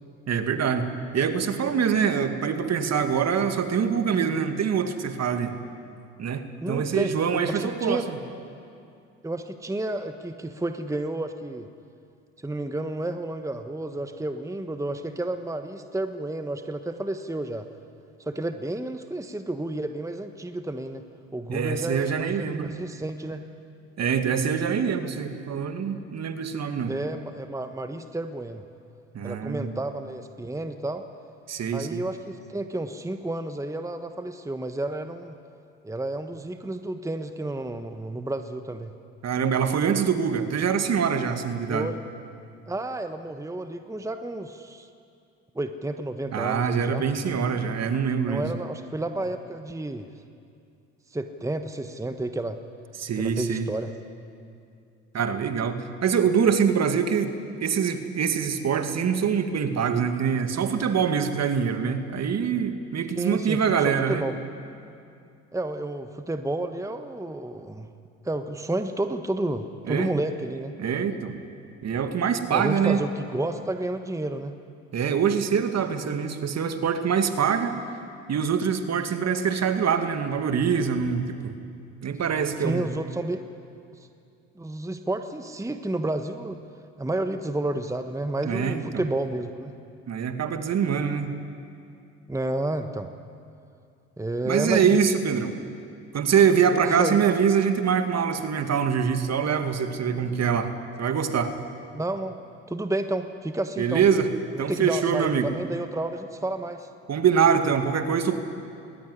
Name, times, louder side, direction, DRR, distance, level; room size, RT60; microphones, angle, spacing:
voice 1, 0.3-5.5 6.2-8.0 21.5-22.7 24.0-26.9 29.1-29.7 31.5-32.0 39.2-41.9 46.3-48.5 53.0-53.7 55.1-57.3 57.6-64.2 69.9-70.1 70.8-71.4 71.8-73.0 74.9-77.8 78.3-81.5 82.0-82.9 88.4-88.8 90.1-91.3 94.4-95.6 96.1-100.7 101.0-101.6 103.8-104.3 104.6-105.5 107.1-108.4, right 7 dB, 45° right, 7 dB, 2.2 m, -24 dB
voice 2, 6.6-7.1 7.5-8.0 9.2-11.7 12.4-17.7 18.2-21.0 21.3-23.4 26.9-28.6 29.2-31.0 31.7-35.4 35.8-38.9 41.7-42.0 42.7-44.9 45.5-47.0 48.3-50.1 51.1-52.6 53.2-53.9 63.1-64.3 65.5-67.9 68.2-70.7 72.5-74.5 82.6-83.4 83.9-84.1 84.6-86.6 87.0-89.7 92.3-93.1 94.2-95.0 96.7-97.2 101.9-102.4 102.7-104.0 104.5-106.9, right 2 dB, 10° right, 8 dB, 1.3 m, -31 dB
20.5 x 18.5 x 9.9 m, 2.5 s
hypercardioid pair, 60°, 35 cm